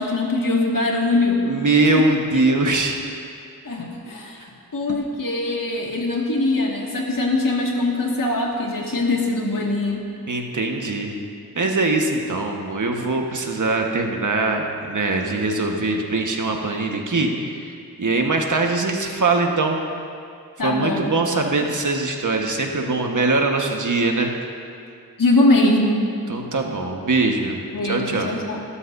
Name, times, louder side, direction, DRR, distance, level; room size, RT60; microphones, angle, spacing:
voice 1, 0.0-1.4 1.9-2.0 3.6-4.4 4.7-10.0 20.6-21.1 25.2-26.0 27.7-28.6, left 2 dB, 60° left, -1 dB, 2.1 m, -22 dB
voice 2, 1.4-3.0 10.3-11.1 11.5-17.7 18.0-19.8 20.6-24.3 26.3-27.6 27.8-28.3, right 3 dB, 55° right, 2 dB, 1.4 m, -22 dB
18.5 x 13.0 x 2.7 m, 2.4 s
cardioid pair, 60°, 37 cm